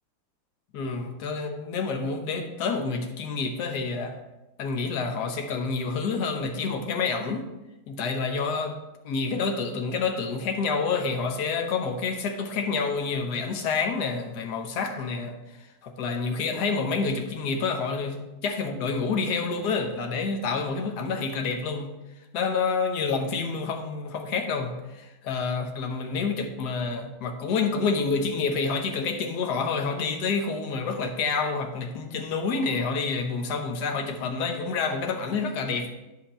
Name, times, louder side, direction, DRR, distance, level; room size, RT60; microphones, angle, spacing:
voice 1, 0.7-4.2 4.6-7.5 7.9-8.8 9.0-15.4 15.8-21.9 22.3-35.9, left 4 dB, 65° left, 4 dB, 1.4 m, -28 dB
10.0 x 5.6 x 4.2 m, 1.0 s
omnidirectional pair, 2.0 m